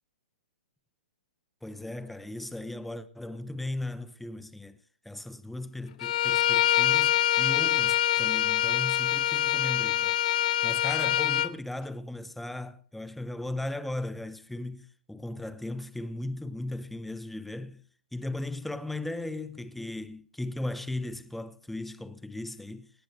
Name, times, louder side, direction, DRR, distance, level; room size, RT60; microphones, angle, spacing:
voice 1, 1.6-4.8 5.0-17.8 18.1-22.9, left 2 dB, 5° left, 0.9 m, -37 dB
Bowed string instrument, 6.0-11.5, left 13 dB, 55° left, 0.8 m, -25 dB
18.0 x 18.0 x 3.2 m
hypercardioid pair, 125°, 5 cm